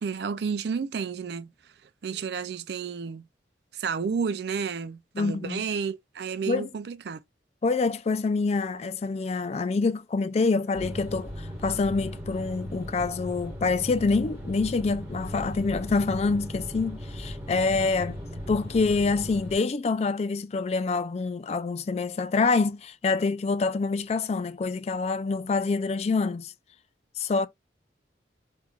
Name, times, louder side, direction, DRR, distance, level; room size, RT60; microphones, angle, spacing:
voice 1, 0.0-1.5 1.8-3.3 3.7-7.2, right 6 dB, 60° right, 0.4 m, -31 dB
voice 2, 5.2-5.6 6.5-6.7 7.6-18.2 18.5-26.5 27.2-27.5, left 4 dB, 35° left, 0.3 m, -26 dB
sound 1, 10.7-19.6, equal, 15° right, 1.6 m, -37 dB
3.4 x 3.2 x 2.3 m
head